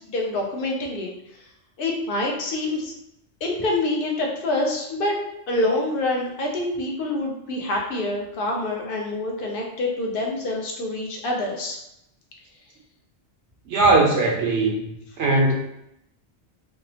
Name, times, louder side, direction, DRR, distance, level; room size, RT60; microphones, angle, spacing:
voice 1, 0.1-1.1 1.8-2.9 3.4-5.2 5.5-11.8, left 2 dB, 60° left, 0 dB, 0.7 m, -26 dB
voice 2, 13.7-15.5, right 2 dB, 80° right, -1 dB, 0.9 m, -20 dB
2.7 x 2.0 x 2.7 m, 0.82 s
omnidirectional pair, 1.2 m